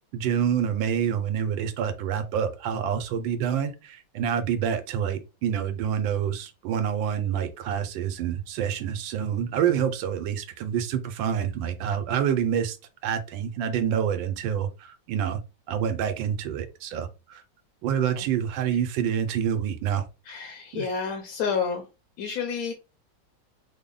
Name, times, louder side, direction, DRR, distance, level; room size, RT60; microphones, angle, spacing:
voice 1, 0.1-12.8 13.0-15.4 15.7-17.4 17.8-20.0 20.7-20.9, right 8 dB, 85° right, 1.4 m, -27 dB
voice 2, 20.3-21.8 22.2-22.7, left 6 dB, 65° left, 0.9 m, -29 dB
3.5 x 2.1 x 3.8 m
omnidirectional pair, 2.0 m